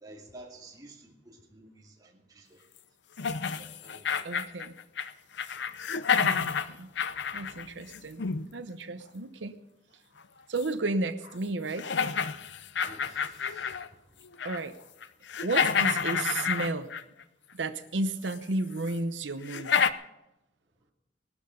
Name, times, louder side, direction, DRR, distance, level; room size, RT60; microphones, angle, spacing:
voice 1, 0.0-2.6 3.6-4.4 12.9-14.2, right 1 dB, 20° right, -2 dB, 2.5 m, -52 dB
sound 1, 3.2-5.1 5.4-8.4 10.6-10.7 11.2-11.3 11.8-13.9 14.2-14.7 15.0-17.2 18.3-18.4 18.9-19.0 19.4-19.9, left 6 dB, 70° left, 0.6 m, -29 dB
voice 2, 4.2-4.7 6.2-6.9 7.3-8.2 8.5-9.6 10.5-11.9 14.4-14.7 15.4-16.9 17.5-19.9, right 2 dB, 80° right, 8 dB, 0.9 m, -33 dB
19.0 x 12.0 x 5.2 m, 0.91 s
head